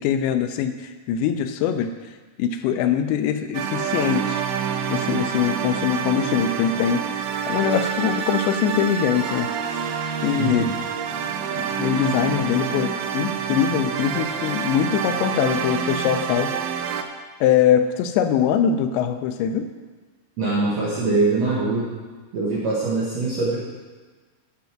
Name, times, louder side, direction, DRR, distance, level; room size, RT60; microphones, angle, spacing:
voice 1, 0.0-1.9 2.4-4.4 4.9-9.8 10.2-10.8 11.5-16.5 17.4-19.7, left 8 dB, 85° left, 8 dB, 3.0 m, -22 dB
sound 1, 3.5-17.0, right 7 dB, 85° right, 2.2 m, -27 dB
voice 2, 10.4-10.7 20.4-21.9 22.3-23.6, right 3 dB, 60° right, -7 dB, 1.7 m, -23 dB
13.0 x 5.2 x 5.9 m, 1.4 s
omnidirectional pair, 5.1 m